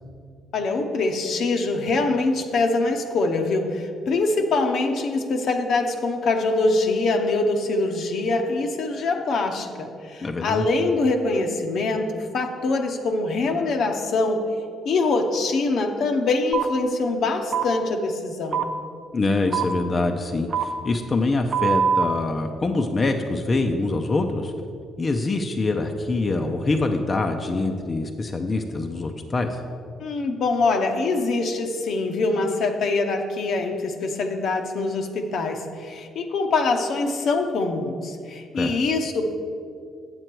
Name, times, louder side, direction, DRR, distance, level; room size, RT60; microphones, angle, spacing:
voice 1, 0.5-14.5 14.8-18.7 30.0-39.3, left 3 dB, 65° left, 4 dB, 0.9 m, -24 dB
voice 2, 10.2-10.7 19.1-24.5 25.0-29.6 38.6-38.7, left 3 dB, 35° left, 4 dB, 0.6 m, -24 dB
sound 1, 16.5-16.7 17.5-17.7 18.5-18.6 19.5-19.6 20.5-20.6 21.5-22.0, right 7 dB, 45° right, 0.7 m, -22 dB
7.8 x 7.7 x 4.6 m, 2.3 s
cardioid pair, 80°, 0 cm